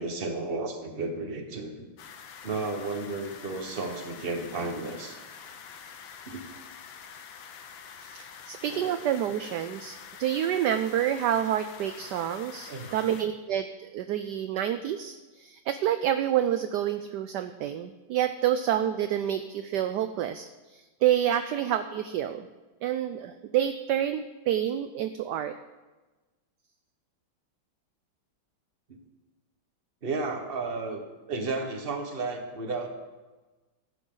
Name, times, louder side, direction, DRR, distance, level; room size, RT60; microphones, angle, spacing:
voice 1, 0.0-1.9 2.4-5.2 6.3-6.4 8.7-9.0 12.7-12.9 28.9-29.0 30.0-31.0 31.3-32.9, right 3 dB, 30° right, 4 dB, 1.3 m, -33 dB
sound 1, 2.0-13.2, left 7 dB, 75° left, 1.7 m, -46 dB
voice 2, 8.0-22.5 22.8-25.6, right 10 dB, 70° right, 10 dB, 1.0 m, -28 dB
14.5 x 11.5 x 3.9 m, 1.2 s
omnidirectional pair, 2.2 m